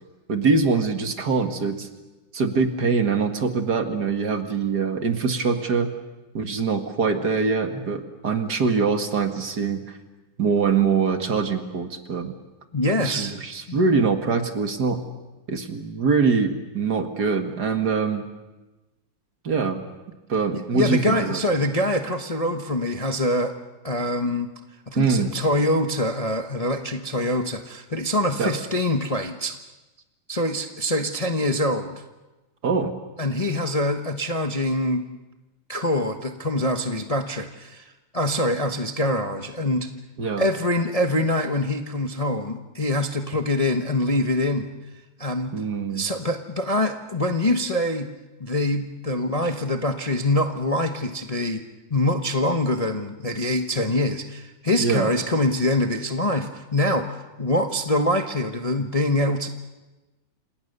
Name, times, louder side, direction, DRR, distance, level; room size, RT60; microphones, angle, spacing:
voice 1, 0.3-1.9 2.3-5.9 6.3-9.8 10.4-12.3 13.0-15.0 15.5-18.2 19.4-19.9 20.3-21.4 25.0-25.3 28.4-28.5 32.6-32.9 40.2-40.5 45.5-46.0 54.8-55.1, right 5 dB, 55° right, 7 dB, 2.4 m, -23 dB
voice 2, 12.7-13.3 13.7-13.8 20.5-23.5 23.8-24.5 24.9-29.6 30.3-32.0 33.2-35.0 35.7-39.9 40.4-44.7 45.2-45.5 45.9-48.1 48.4-51.6 51.9-59.5, left 1 dB, 25° left, 5 dB, 1.0 m, -24 dB
29.5 x 27.5 x 6.8 m, 1.1 s
omnidirectional pair, 2.2 m